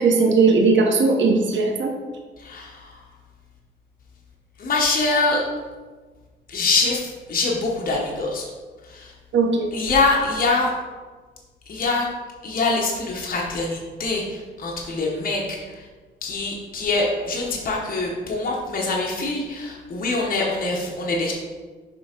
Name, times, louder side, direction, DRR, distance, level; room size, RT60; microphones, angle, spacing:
voice 1, 0.0-1.9 9.3-9.7, right 4 dB, 65° right, 1 dB, 0.9 m, -18 dB
voice 2, 2.4-3.0 4.6-5.4 6.5-8.4 8.9-9.1 9.7-10.7 11.7-12.0 12.4-15.8 16.2-21.3, left 3 dB, 45° left, -2 dB, 1.1 m, -24 dB
6.9 x 3.3 x 5.1 m, 1.4 s
cardioid pair, 105°, 21 cm